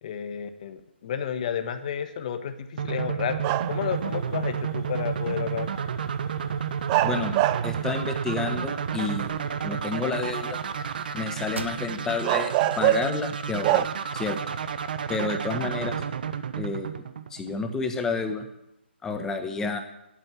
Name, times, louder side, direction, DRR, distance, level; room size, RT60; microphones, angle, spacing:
voice 1, 0.0-3.4 3.7-5.7, left 8 dB, 40° left, 9 dB, 1.5 m, -31 dB
sound 1, 2.8-17.7, right 7 dB, 50° right, 1.1 m, -31 dB
sound 2, 3.4-3.9 5.7-5.8 6.9-7.8 8.4-9.0 11.6-11.7 12.2-13.3 13.6-13.9, right 14 dB, 20° right, 0.4 m, -24 dB
voice 2, 7.0-7.4 7.6-10.6 11.1-13.9 14.1-14.4 15.1-16.0 16.5-16.9 17.3-18.5 19.0-19.8, left 4 dB, 10° left, 6 dB, 1.2 m, -30 dB
sound 3, 11.5-12.3 12.8-12.9 13.4-14.3, right 2 dB, 85° right, 1.2 m, -39 dB
11.5 x 9.1 x 9.8 m, 0.87 s
figure-of-eight pair, 145°, 6 cm